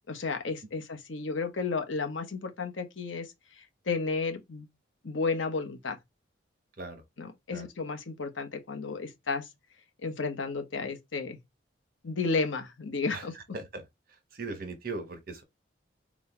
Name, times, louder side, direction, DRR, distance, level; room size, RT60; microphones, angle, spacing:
voice 1, 0.1-4.7 5.0-6.0 7.2-9.5 10.0-11.4 12.0-13.3, left 4 dB, 85° left, 1.0 m, -33 dB
voice 2, 14.3-15.4, right 3 dB, 50° right, 1.2 m, -38 dB
4.1 x 2.4 x 4.3 m
head